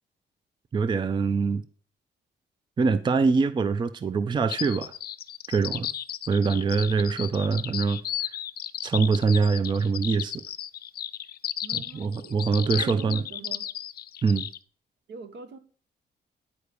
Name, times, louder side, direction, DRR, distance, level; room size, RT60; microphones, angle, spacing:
voice 1, 0.7-1.6 2.8-4.9 5.5-5.9 6.3-8.3 8.8-10.4 11.7-13.2 14.2-14.5, right 5 dB, 25° right, 0.4 m, -24 dB
sound 1, 4.5-14.6, left 11 dB, 55° left, 0.5 m, -34 dB
voice 2, 11.6-13.7 15.1-15.6, right 4 dB, 70° right, 1.4 m, -43 dB
9.7 x 4.7 x 6.8 m
cardioid pair, 140°, 19 cm